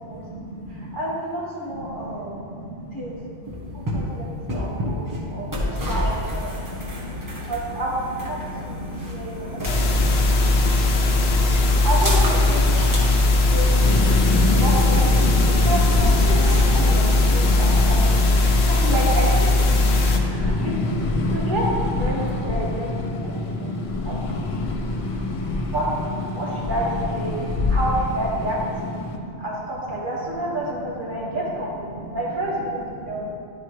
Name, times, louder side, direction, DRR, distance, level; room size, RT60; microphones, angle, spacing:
voice 1, 0.1-1.0 1.8-3.2 3.6-3.9 4.4-4.8 5.1-5.8 6.5-7.2 8.5-11.3 13.1-13.4 15.4-15.7 16.6-16.8 17.1-17.2 17.5-17.6 18.4-18.7 19.8-20.7 23.2-25.0 27.3-27.7 29.0-29.4 31.1-31.4 33.0-33.1, right 1 dB, 85° right, -6 dB, 1.8 m, -39 dB
voice 2, 0.7-2.4 2.9-3.2 3.9-6.5 7.2-8.4 8.6-10.6 11.8-19.9 20.1-20.7 21.3-22.9 23.2-24.4 25.7-25.9 26.3-28.6 29.0-33.3, right 1 dB, 55° right, -5 dB, 1.6 m, -30 dB
sound 1, 3.4-16.8, left 1 dB, 20° right, 1.1 m, -31 dB
sound 2, 9.6-20.2, left 2 dB, 80° left, 1.0 m, -18 dB
sound 3, 13.8-29.2, left 2 dB, 45° left, 0.4 m, -26 dB
11.0 x 4.4 x 3.2 m, 2.6 s
omnidirectional pair, 1.0 m